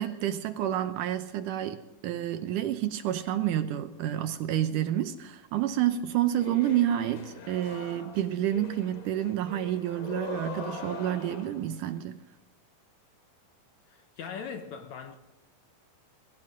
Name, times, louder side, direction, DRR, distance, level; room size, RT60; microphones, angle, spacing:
voice 1, 0.0-12.2, right 11 dB, 75° right, 2.2 m, -29 dB
sound 1, 6.3-11.8, left 5 dB, 50° left, 3.3 m, -42 dB
voice 2, 13.9-15.2, left 6 dB, 70° left, 1.9 m, -40 dB
21.0 x 16.0 x 3.8 m
omnidirectional pair, 4.1 m